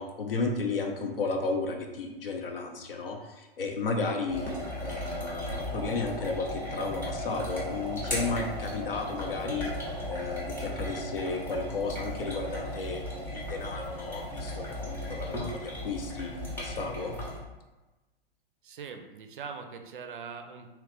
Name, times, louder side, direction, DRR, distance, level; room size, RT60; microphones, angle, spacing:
voice 1, 0.0-4.5 4.8-9.7 10.1-17.1, left 3 dB, 70° left, 3 dB, 0.6 m, -33 dB
sound 1, 4.3-17.4, equal, 5° left, 0.6 m, -36 dB
voice 2, 18.6-20.7, right 5 dB, 60° right, 5 dB, 0.4 m, -42 dB
3.0 x 2.3 x 3.3 m, 1.1 s
figure-of-eight pair, 105°, 30 cm